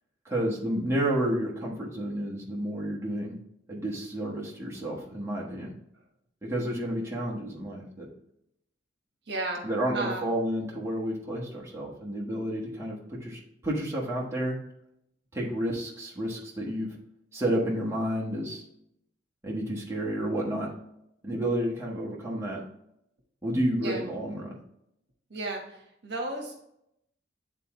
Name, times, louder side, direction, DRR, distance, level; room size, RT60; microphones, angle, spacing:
voice 1, 0.2-3.4 3.7-5.7 6.4-8.1 9.6-14.5 15.3-16.9 17.3-18.6 19.4-20.7 21.2-22.6 23.4-24.6, right 1 dB, 15° right, -4 dB, 1.4 m, -30 dB
voice 2, 9.3-9.7 9.9-10.3 23.8-24.0 25.3-26.6, right 2 dB, 60° right, 1 dB, 1.3 m, -34 dB
9.4 x 3.7 x 3.1 m, 0.79 s
head